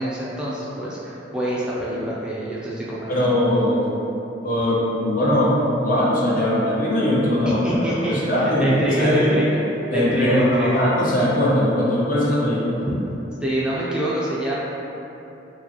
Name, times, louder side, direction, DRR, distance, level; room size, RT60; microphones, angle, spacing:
voice 1, 0.0-3.4 7.5-9.6 9.9-10.8 13.4-14.5, right 1 dB, 5° right, -7 dB, 0.3 m, -26 dB
voice 2, 3.1-3.9 4.4-5.5 5.8-7.6 8.1-9.4 9.9-12.8, left 1 dB, 50° left, -7 dB, 0.8 m, -20 dB
4.7 x 2.2 x 2.8 m, 3.0 s
head